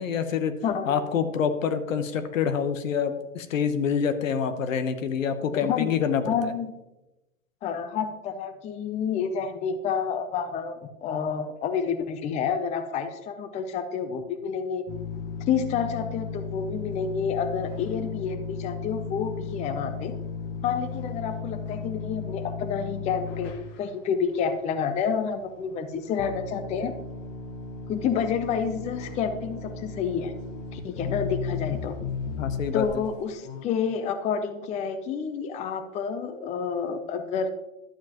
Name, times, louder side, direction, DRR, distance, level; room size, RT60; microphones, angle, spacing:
voice 1, 0.0-0.6 0.9-6.5 32.4-32.9, left 7 dB, 80° left, 9 dB, 1.0 m, -26 dB
voice 2, 0.6-1.2 5.5-5.9 6.3-6.7 7.6-14.8 15.5-20.1 20.6-26.9 27.9-30.3 30.7-32.0 32.7-37.5, left 6 dB, 20° left, 9 dB, 0.5 m, -29 dB
sound 1, 14.9-23.8 24.5-24.6 25.0-25.1 26.2-33.0 33.4-33.6, left 5 dB, 40° left, 1.1 m, -35 dB
11.5 x 7.3 x 2.9 m, 0.98 s
hypercardioid pair, 115°, 39 cm